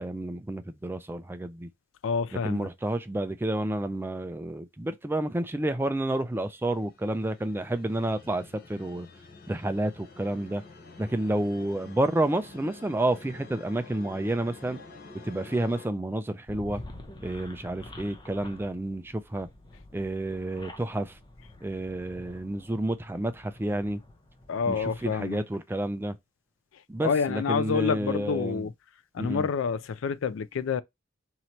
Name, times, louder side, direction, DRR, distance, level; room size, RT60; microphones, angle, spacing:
voice 1, 0.0-1.7 2.4-8.4 8.7-9.1 9.5-10.6 11.0-14.8 15.2-16.8 17.2-19.5 19.9-21.2 21.6-24.0 24.7-26.1 26.9-28.7 29.2-29.5, right 1 dB, 10° right, 0.3 m, -30 dB
voice 2, 2.0-2.7 24.5-25.4 27.0-28.7 29.1-30.8, left 6 dB, 75° left, 0.4 m, -28 dB
sound 1, 6.2-15.9, left 3 dB, 50° left, 0.9 m, -48 dB
sound 2, 16.5-25.2, left 2 dB, 20° left, 0.6 m, -48 dB
3.0 x 2.8 x 4.3 m
head